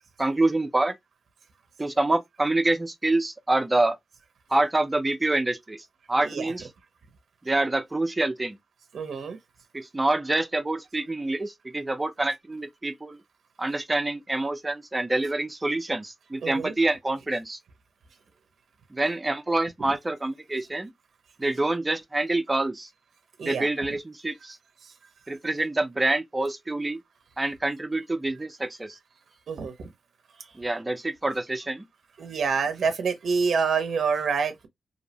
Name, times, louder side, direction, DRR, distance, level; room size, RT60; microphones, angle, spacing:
voice 1, 0.2-0.9 1.8-4.0 4.5-6.7 7.5-8.6 9.7-13.2 13.6-17.6 18.9-20.9 21.4-22.9 23.5-24.6 25.3-27.0 27.4-29.0 30.6-31.9, right 2 dB, 20° right, 0.3 m, -26 dB
voice 2, 8.9-9.4 16.4-16.7 23.4-23.7 24.8-24.9 29.5-29.9 30.4-30.5 32.2-34.7, right 5 dB, 75° right, 0.5 m, -27 dB
2.6 x 2.0 x 2.7 m
wide cardioid pair, 115°, 0 cm